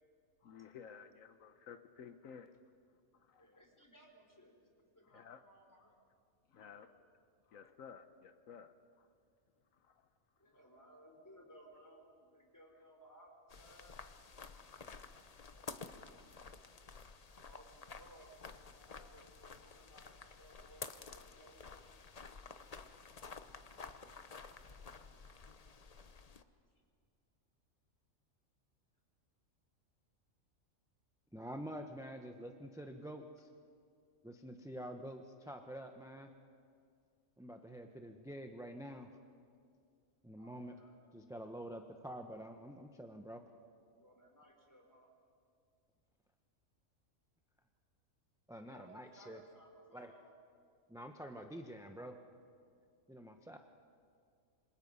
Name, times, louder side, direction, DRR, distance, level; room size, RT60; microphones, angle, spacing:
voice 1, 0.4-2.5 3.3-3.5 5.1-5.4 6.5-6.9 7.5-9.1 9.8-10.0, left 7 dB, 80° left, 9 dB, 1.3 m, -54 dB
voice 2, 3.4-6.0 6.6-6.9 10.4-14.0 15.5-16.5 17.3-21.7 40.4-41.0 43.9-45.1 48.6-50.3 51.2-51.5, right 1 dB, 15° left, 1 dB, 3.9 m, -62 dB
sound 1, 13.5-26.4, left 4 dB, 35° left, 0.8 m, -52 dB
voice 3, 31.3-33.5 34.2-36.3 37.4-39.1 40.2-40.7 41.1-43.4 48.5-49.4 49.9-50.1 50.9-52.2 53.1-53.6, equal, 5° right, 5 dB, 0.8 m, -47 dB
27.0 x 25.0 x 5.5 m, 2.3 s
omnidirectional pair, 1.4 m